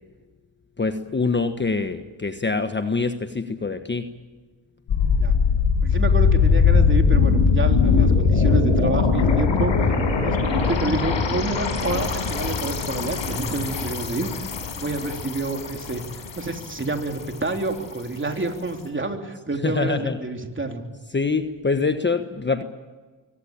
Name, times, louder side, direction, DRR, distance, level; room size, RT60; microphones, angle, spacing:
voice 1, 0.8-4.1 19.6-20.2 21.1-22.6, left 4 dB, 20° left, 8 dB, 1.3 m, -24 dB
sound 1, 4.9-17.4 17.7-17.8, left 5 dB, 65° left, 5.7 m, -21 dB
voice 2, 5.8-14.5 14.7-16.0 16.3-20.8, right 2 dB, 25° right, 4 dB, 3.4 m, -28 dB
23.5 x 17.5 x 8.9 m, 1.3 s
cardioid pair, 75°, 49 cm